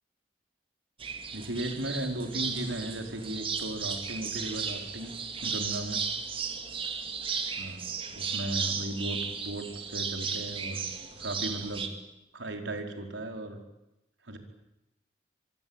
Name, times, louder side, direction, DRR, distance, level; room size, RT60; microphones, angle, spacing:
sound 1, 1.0-11.9, right 6 dB, 30° right, 2.4 m, -35 dB
voice 1, 1.3-5.1 5.4-6.0 7.6-10.8 11.1-11.9 12.3-13.6 14.2-14.4, right 1 dB, 90° right, 5 dB, 4.6 m, -36 dB
25.5 x 24.5 x 9.0 m, 0.91 s
head